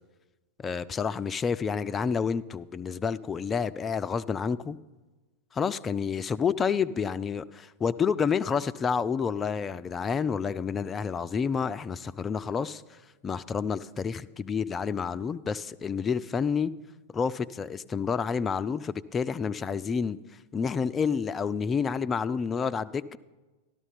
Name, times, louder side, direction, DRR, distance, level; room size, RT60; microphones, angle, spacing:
voice 1, 0.6-4.8 5.5-12.8 13.2-16.7 17.1-20.2 20.5-23.2, left 6 dB, 20° left, 14 dB, 0.3 m, -29 dB
12.5 x 12.5 x 3.9 m, 1.2 s
figure-of-eight pair, 90°, 0 cm